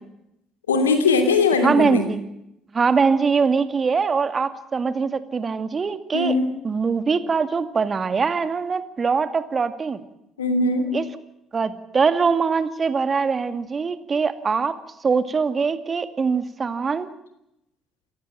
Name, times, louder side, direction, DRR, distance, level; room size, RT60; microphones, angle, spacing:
voice 1, 0.7-2.1 6.1-6.5 10.4-10.9, left 3 dB, 85° left, 8 dB, 2.9 m, -20 dB
voice 2, 1.6-2.2 2.7-6.4 6.6-10.0 10.9-11.0 11.5-14.8 15.0-17.1, right 5 dB, 35° right, 11 dB, 2.2 m, -22 dB
28.5 x 15.5 x 7.6 m, 0.81 s
figure-of-eight pair, 50°, 0 cm